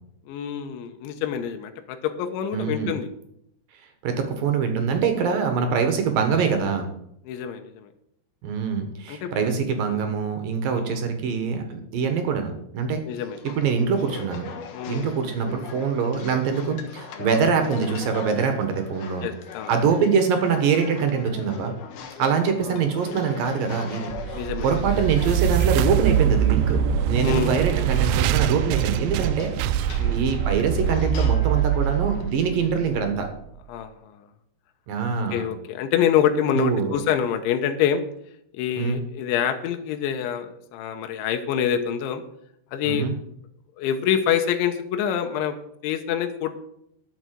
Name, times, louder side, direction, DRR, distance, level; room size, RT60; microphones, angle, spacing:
voice 1, 0.3-3.1 5.2-5.3 7.3-7.9 9.1-9.3 10.7-11.0 13.1-13.4 14.7-15.1 17.2-17.4 19.2-19.7 22.3-22.8 24.3-24.8 27.2-27.6 30.0-30.2 33.7-34.3 35.3-38.0 38.5-42.2 42.7-43.1 43.8-45.6 45.8-46.5, left 9 dB, 85° left, 6 dB, 3.3 m, -26 dB
voice 2, 2.5-3.0 4.0-6.9 8.4-13.0 13.4-14.5 14.9-19.3 19.7-21.8 22.2-33.3 34.9-35.4 36.5-37.0 38.8-39.0 42.8-43.1, right 6 dB, 65° right, 6 dB, 2.6 m, -24 dB
sound 1, 13.3-33.0, left 6 dB, 65° left, 3.0 m, -40 dB
sound 2, 24.1-33.3, right 9 dB, 85° right, 2.9 m, -23 dB
12.0 x 6.9 x 7.6 m, 0.74 s
omnidirectional pair, 5.2 m